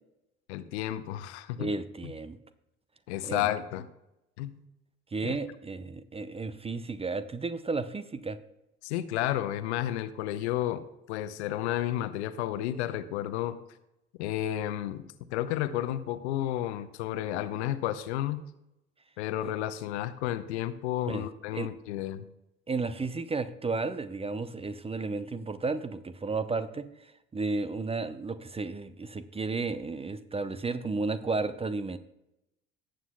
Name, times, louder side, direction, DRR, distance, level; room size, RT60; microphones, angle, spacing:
voice 1, 0.5-1.7 2.0-2.1 3.1-3.9 4.4-4.6 5.2-5.3 8.8-13.6 14.2-15.0 15.3-18.4 19.2-22.2, left 13 dB, 65° left, 13 dB, 0.8 m, -32 dB
voice 2, 1.6-2.4 3.2-3.5 5.1-8.4 21.1-21.3 21.5-21.7 22.7-26.9 27.3-32.0, right 3 dB, 15° right, 13 dB, 0.7 m, -33 dB
18.0 x 7.6 x 2.2 m, 0.90 s
figure-of-eight pair, 55°, 36 cm